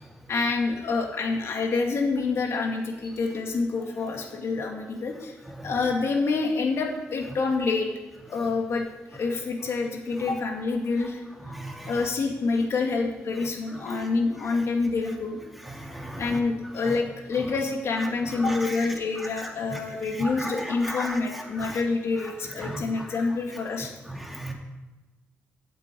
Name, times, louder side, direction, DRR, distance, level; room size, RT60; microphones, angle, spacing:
voice 1, 0.3-5.3 5.6-7.9 8.3-8.8 9.1-11.2 11.9-15.4 16.2-23.9, left 4 dB, 65° left, 1 dB, 2.2 m, -27 dB
voice 2, 11.5-11.9 15.7-16.2 18.4-18.9 19.7-19.8 20.2-21.2 21.6-21.8 22.6-23.1 24.1-24.5, equal, ahead, 0 dB, 2.3 m, -35 dB
8.4 x 7.9 x 8.3 m, 1.1 s
cardioid pair, 95°, 5 cm